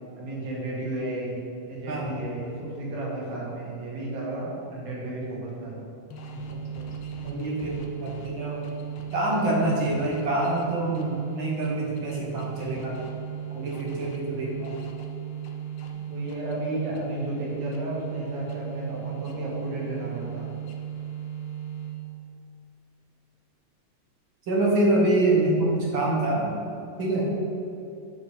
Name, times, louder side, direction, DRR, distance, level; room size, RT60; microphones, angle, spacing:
voice 1, 0.2-1.4 1.7-5.9 15.9-20.5, right 1 dB, 75° right, -5 dB, 3.4 m, -33 dB
voice 2, 1.9-2.2 6.5-6.6 7.2-8.6 9.1-13.0 13.5-14.8 24.5-26.5 27.0-27.3, right 2 dB, 50° right, -3 dB, 1.7 m, -26 dB
sound 1, 6.1-22.2, right 9 dB, 75° left, 1.2 m, -36 dB
8.0 x 5.1 x 7.0 m, 2.7 s
omnidirectional pair, 3.5 m